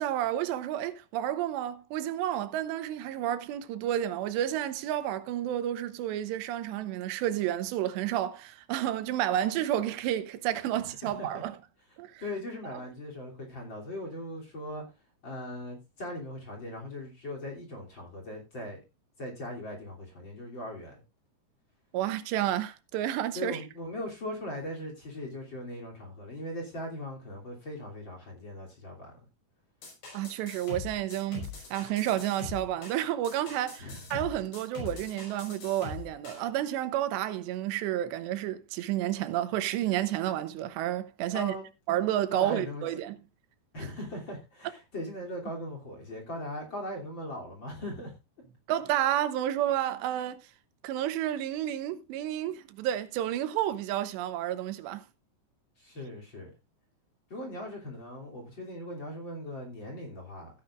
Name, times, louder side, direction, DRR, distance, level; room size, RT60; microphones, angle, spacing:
voice 1, 0.0-11.6 12.0-12.2 12.7-12.8 21.9-23.6 30.1-41.6 41.9-43.2 48.7-50.4 50.8-55.0, right 12 dB, 90° right, 3.2 m, -30 dB
voice 2, 10.7-11.4 12.2-14.8 15.2-18.8 19.2-21.0 23.3-29.2 33.8-34.1 41.3-41.7 42.3-42.8 43.7-48.1 55.8-56.5 57.3-60.5, left 1 dB, 30° left, 3.2 m, -39 dB
sound 1, 29.8-36.5, left 4 dB, 80° left, 7.3 m, -42 dB
15.5 x 10.5 x 2.5 m
omnidirectional pair, 4.8 m